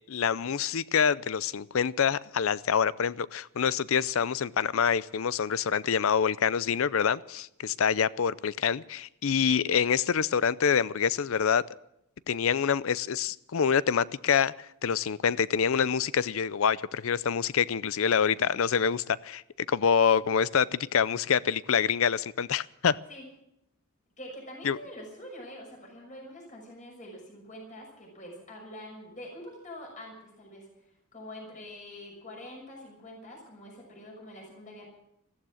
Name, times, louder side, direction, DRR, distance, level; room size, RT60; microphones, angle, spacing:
voice 1, 0.1-11.6 12.3-19.4 19.7-23.0 24.6-24.8, left 7 dB, 65° left, 0.5 m, -26 dB
voice 2, 24.2-30.7 31.1-34.8, left 1 dB, 35° left, 6.2 m, -45 dB
15.0 x 14.5 x 6.3 m
head